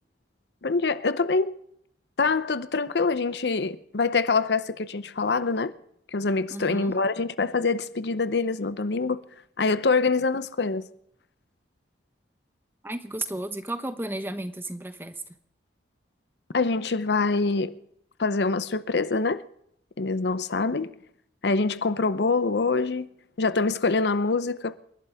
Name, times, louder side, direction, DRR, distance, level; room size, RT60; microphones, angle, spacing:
voice 1, 0.6-1.6 2.2-5.7 6.1-9.2 9.6-10.9 16.5-17.8 18.2-19.4 20.0-20.9 21.4-23.1 23.4-24.8, left 4 dB, 65° left, 0.7 m, -25 dB
voice 2, 6.5-6.9 12.8-15.2, right 1 dB, 10° right, 1.1 m, -33 dB
28.5 x 12.0 x 3.6 m
head